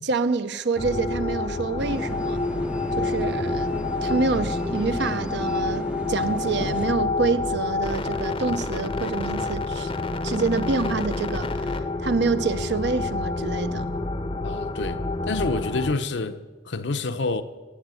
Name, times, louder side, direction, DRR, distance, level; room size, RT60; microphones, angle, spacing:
voice 1, 0.0-2.4 3.0-3.7 4.0-9.9 10.2-11.7 12.0-13.9, right 4 dB, 65° right, 0.7 m, -27 dB
sound 1, 0.8-15.9, left 3 dB, 30° left, 0.7 m, -28 dB
sound 2, 1.8-6.9, right 1 dB, 5° right, 0.5 m, -35 dB
voice 2, 14.4-17.4, left 3 dB, 65° left, 0.8 m, -28 dB
17.5 x 7.9 x 7.8 m
head